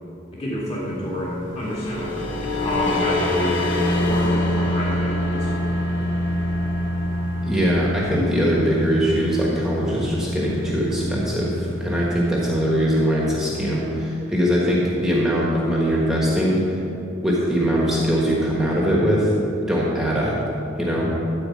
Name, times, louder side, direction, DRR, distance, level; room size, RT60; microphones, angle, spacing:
voice 1, 0.3-3.7 4.0-5.7, equal, 30° left, -7 dB, 2.2 m, -29 dB
sound 1, 1.5-12.2, left 1 dB, 65° left, 1.5 m, -25 dB
voice 2, 7.4-16.6 17.2-19.3 19.7-20.4 20.8-21.1, equal, ahead, -5 dB, 1.4 m, -21 dB
13.5 x 4.6 x 7.5 m, 2.7 s
head